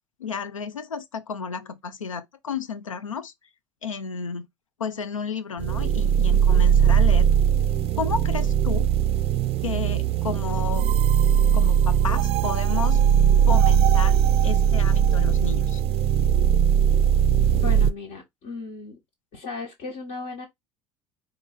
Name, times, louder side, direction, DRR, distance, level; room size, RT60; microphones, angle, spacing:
voice 1, 0.2-3.3 3.8-4.5 4.8-7.3 8.0-8.9 9.6-10.9 11.5-13.0 13.5-14.2 14.4-15.8, left 5 dB, 85° left, 0.5 m, -32 dB
sound 1, 5.6-17.9, right 9 dB, 35° right, 0.4 m, -20 dB
voice 2, 17.6-19.0 19.3-20.5, left 3 dB, 50° left, 1.3 m, -36 dB
4.5 x 2.4 x 4.1 m
figure-of-eight pair, 65°, 16 cm